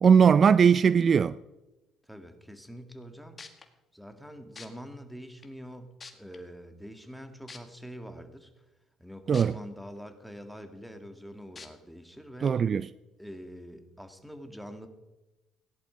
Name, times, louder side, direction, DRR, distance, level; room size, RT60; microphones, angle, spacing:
voice 1, 0.0-1.3 9.3-9.5 12.4-12.9, right 6 dB, 40° right, 0.3 m, -20 dB
voice 2, 2.0-3.4 3.9-8.5 9.0-12.5 13.2-14.9, equal, ahead, 1.9 m, -45 dB
sound 1, 3.0-3.1 3.4-3.6 4.6-4.7 5.4-5.5 6.0-6.4 7.5-7.6 9.3-9.4 10.0-10.1 11.6-11.7 12.4-12.5, left 4 dB, 30° left, 1.7 m, -44 dB
16.5 x 10.5 x 5.1 m
supercardioid pair, 85°, 0 cm